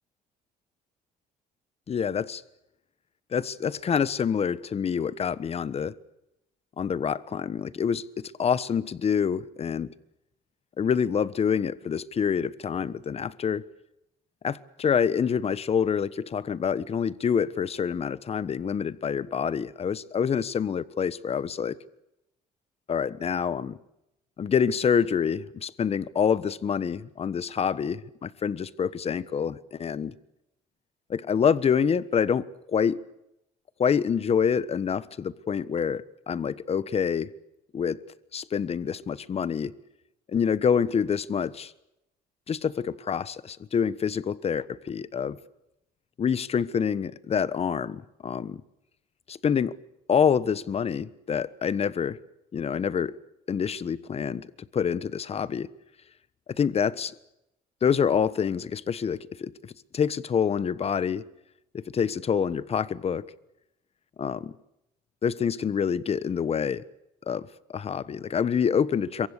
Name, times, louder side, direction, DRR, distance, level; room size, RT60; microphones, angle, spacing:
voice 1, 1.9-2.4 3.3-5.9 6.8-9.9 10.8-13.6 14.4-21.7 22.9-23.8 24.4-30.1 31.1-33.0 33.8-37.3 37.7-38.0 38.3-39.7 40.3-41.7 42.5-45.4 46.2-48.6 49.3-49.8 50.1-52.2 52.5-53.1 53.5-55.7 56.5-57.2 57.8-61.2 61.7-63.2 64.2-64.5 65.2-66.8 67.3-69.3, left 7 dB, 35° left, 1.3 m, -27 dB
27.0 x 23.5 x 6.8 m
cardioid pair, 110°, 17 cm